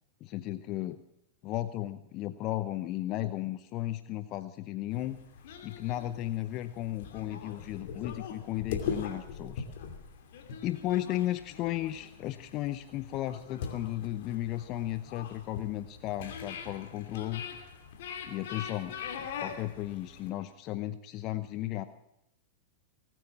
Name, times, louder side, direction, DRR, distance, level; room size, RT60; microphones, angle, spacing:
voice 1, 0.2-1.0 1.4-5.2 5.6-9.7 10.6-17.4 18.3-21.8, left 14 dB, 45° left, 12 dB, 0.8 m, -35 dB
sound 1, 4.9-20.3, left 6 dB, 65° left, 2.7 m, -42 dB
20.0 x 9.2 x 7.2 m, 0.84 s
hypercardioid pair, 100°, 0 cm